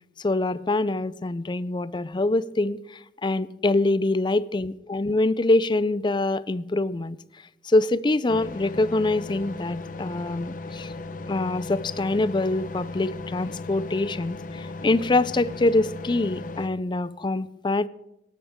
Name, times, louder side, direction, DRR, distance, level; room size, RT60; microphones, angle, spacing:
voice 1, 0.2-7.2 7.6-10.9 11.3-17.9, left 2 dB, 25° left, 0.4 m, -24 dB
sound 1, 8.3-16.7, left 3 dB, 50° left, 0.9 m, -37 dB
18.5 x 12.5 x 3.6 m
head